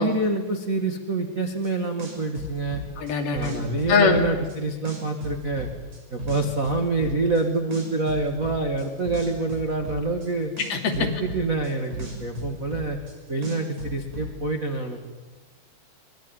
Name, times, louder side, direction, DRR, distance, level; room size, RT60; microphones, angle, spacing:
voice 1, 0.0-2.8 3.3-5.7 6.1-10.5 10.9-13.0 13.3-15.0, right 2 dB, 60° right, 1 dB, 0.8 m, -26 dB
sound 1, 1.6-1.7 2.0-4.6 4.8-7.4 7.7-10.3 10.6-13.1 13.4-14.3, equal, 40° right, 7.0 m, -35 dB
voice 2, 3.0-3.6 3.9-4.2 10.7-11.1, left 5 dB, 60° left, 2 dB, 4.3 m, -22 dB
24.5 x 21.0 x 9.1 m, 1.2 s
omnidirectional pair, 5.3 m